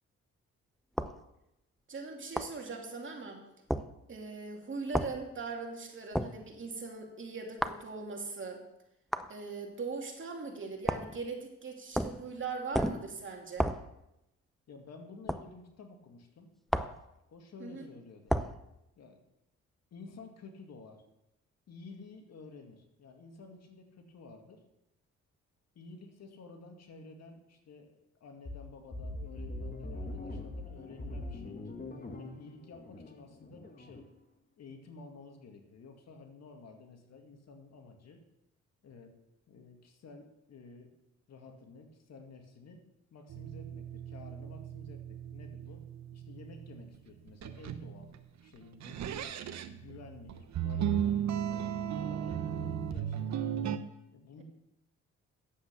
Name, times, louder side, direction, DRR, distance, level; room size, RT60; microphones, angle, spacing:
sound 1, 1.0-1.2 2.4-2.6 3.7-3.9 4.9-5.2 6.1-6.4 7.6-7.8 9.1-9.3 10.9-11.2 11.9-12.2 12.7-13.1 13.6-13.9 15.3-15.5 16.7-17.0 18.3-18.6, equal, ahead, 0.6 m, -31 dB
voice 1, 1.9-3.4 4.1-8.6 9.3-13.7 17.6-17.9, right 4 dB, 40° right, 2 dB, 2.7 m, -40 dB
voice 2, 14.7-16.5 17.3-18.3 19.0-19.2 19.9-21.0 21.7-24.6 25.7-31.7 32.2-34.1 34.6-38.2 38.8-39.2 39.5-40.9 41.3-42.8 43.1-45.8 46.1-48.1 48.4-49.1 49.7-51.2 51.8-53.4 54.1-54.4, left 4 dB, 60° left, 4 dB, 2.1 m, -52 dB
sound 2, 28.4-34.1, left 2 dB, 30° left, 1.6 m, -42 dB
sound 3, 43.3-47.0 47.3-48.2 48.8-53.8, right 9 dB, 65° right, 0.9 m, -36 dB
9.8 x 8.1 x 7.0 m, 0.87 s
cardioid pair, 90°, 30 cm